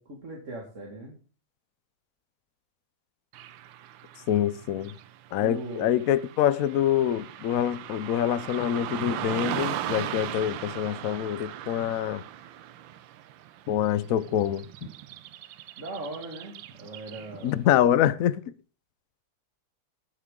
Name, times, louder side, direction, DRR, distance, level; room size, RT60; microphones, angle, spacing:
voice 1, 0.1-1.2 5.4-5.9 15.8-17.6, right 2 dB, 40° right, 2.3 m, -39 dB
Car passing by / Traffic noise roadway noise, 3.3-17.6, right 12 dB, 75° right, 1.4 m, -39 dB
voice 2, 4.3-4.9 5.3-12.2 13.7-14.6 17.4-18.4, left 10 dB, 70° left, 0.8 m, -25 dB
18.0 x 6.6 x 3.8 m
omnidirectional pair, 2.2 m